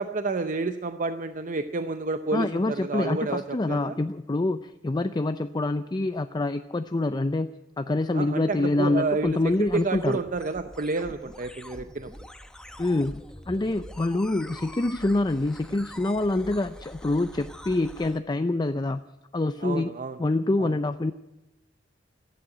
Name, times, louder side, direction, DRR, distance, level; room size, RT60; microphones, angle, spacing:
voice 1, 0.0-4.0 8.1-12.1 19.6-20.2 20.6-20.8, right 3 dB, 45° right, 9 dB, 0.6 m, -30 dB
voice 2, 2.3-10.2 12.8-19.0 19.3-19.9 20.2-21.1, left 2 dB, 25° left, 10 dB, 0.5 m, -26 dB
sound 1, 8.7-18.2, equal, 5° left, 0.9 m, -45 dB
14.5 x 11.0 x 8.8 m, 0.91 s
head